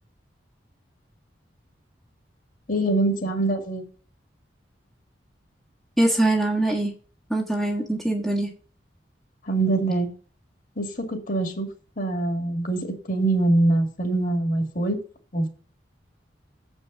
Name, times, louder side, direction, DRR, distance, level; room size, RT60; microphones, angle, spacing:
voice 1, 2.7-3.9 9.5-10.1 10.8-11.7 12.0-15.0 15.3-15.5, right 2 dB, 50° left, 5 dB, 2.1 m, -24 dB
voice 2, 6.0-6.9 7.3-8.5, right 1 dB, ahead, -3 dB, 1.5 m, -23 dB
8.0 x 5.4 x 6.4 m, 0.39 s
head